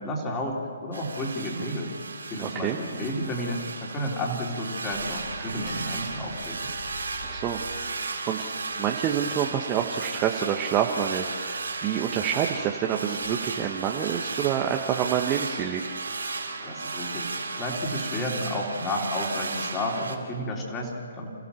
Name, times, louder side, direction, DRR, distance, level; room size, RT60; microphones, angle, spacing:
voice 1, 0.0-1.9 2.3-6.7 16.6-21.3, left 1 dB, 20° left, -1 dB, 3.9 m, -31 dB
sound 1, 0.9-20.2, right 4 dB, 85° right, 4.0 m, -34 dB
voice 2, 2.4-2.8 7.2-8.4 8.8-15.8, right 9 dB, 25° right, 1 dB, 1.3 m, -28 dB
sound 2, 4.9-11.5 11.8-12.0 12.5-12.7 13.2-13.5 13.8-14.0 14.5-14.6 17.0-17.1 17.7-17.8, left 2 dB, 35° left, 3.6 m, -47 dB
29.0 x 15.0 x 7.2 m, 2.3 s
hypercardioid pair, 145°, 0 cm